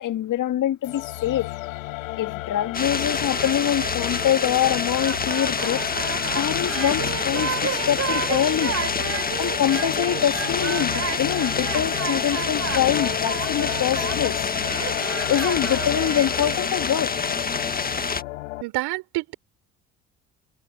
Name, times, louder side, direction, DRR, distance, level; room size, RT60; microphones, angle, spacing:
voice 1, 0.0-1.5 2.2-5.8 6.3-8.7 9.4-14.5 15.3-17.1, left 11 dB, 50° left, 2.3 m, -24 dB
sound 1, 0.8-18.6, left 20 dB, 80° left, 4.3 m, -33 dB
sound 2, 2.7-18.2, left 4 dB, 20° left, 1.9 m, -27 dB
sound 3, 3.2-16.7, right 7 dB, 35° right, 5.8 m, -33 dB
voice 2, 18.6-19.3, right 23 dB, 70° right, 4.9 m, -28 dB
hypercardioid pair, 60°, 40 cm